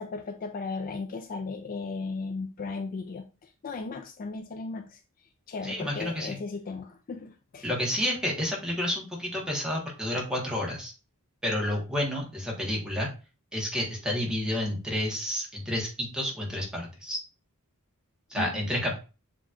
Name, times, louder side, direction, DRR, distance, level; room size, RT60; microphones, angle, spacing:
voice 1, 0.0-5.0 5.5-7.7 18.3-18.5, left 4 dB, 40° left, 6 dB, 0.4 m, -36 dB
voice 2, 5.6-6.4 7.6-10.9 11.4-13.1 13.5-17.2 18.3-19.0, left 1 dB, 5° right, -1 dB, 1.3 m, -30 dB
7.1 x 3.0 x 2.4 m, 0.32 s
head